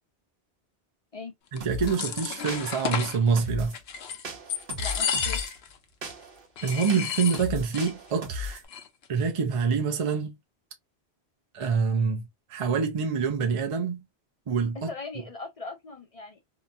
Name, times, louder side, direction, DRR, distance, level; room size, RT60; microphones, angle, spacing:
voice 1, 1.5-3.7 6.6-8.6 9.1-10.4 11.5-14.0 14.5-14.9, right 5 dB, 40° right, 0.5 m, -26 dB
sound 1, 1.6-3.2 3.7-4.2 4.5-5.7 6.0-6.1 6.6-7.9 8.2-8.3 8.5-9.0, left 7 dB, 75° left, 0.8 m, -32 dB
sound 2, 1.6-2.0 2.5-2.9 3.4-3.8 4.2-5.5 6.0-8.7, left 1 dB, 60° right, 1.0 m, -36 dB
voice 2, 4.8-5.4 14.7-16.4, left 3 dB, 40° left, 0.6 m, -39 dB
2.8 x 2.2 x 2.6 m
omnidirectional pair, 1.1 m